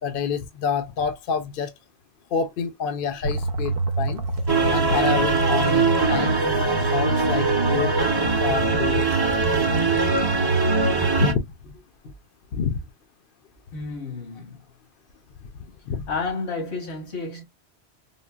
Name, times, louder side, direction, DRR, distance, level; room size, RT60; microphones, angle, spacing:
voice 1, 0.0-1.7 2.3-4.2 4.6-6.4 6.9-7.9 8.4-9.0 11.2-11.4 12.5-12.8 15.9-16.0, left 6 dB, 60° left, 0.7 m, -27 dB
sound 1, 3.2-11.2, right 2 dB, 65° right, 0.8 m, -27 dB
sound 2, 4.5-11.3, right 4 dB, 30° right, 0.5 m, -22 dB
voice 2, 13.7-14.6 16.1-17.4, left 4 dB, 80° left, 1.5 m, -31 dB
3.7 x 2.0 x 2.2 m
omnidirectional pair, 1.1 m